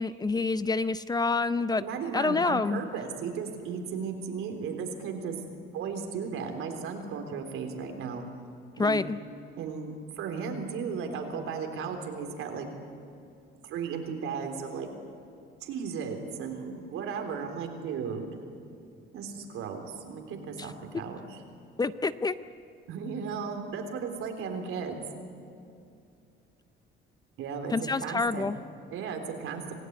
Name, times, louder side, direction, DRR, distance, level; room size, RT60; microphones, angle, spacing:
voice 1, 0.0-1.8 2.1-2.8 8.8-9.2 21.8-22.4 27.7-28.6, left 3 dB, 20° left, 13 dB, 0.5 m, -27 dB
voice 2, 1.8-5.4 5.7-8.3 8.8-9.0 9.6-12.7 13.6-14.9 15.6-18.3 19.1-21.4 22.9-25.0 27.4-27.7 28.0-28.5 28.9-29.6, right 6 dB, 80° right, 4 dB, 3.6 m, -35 dB
26.5 x 17.0 x 9.5 m, 2.6 s
cardioid pair, 140°, 21 cm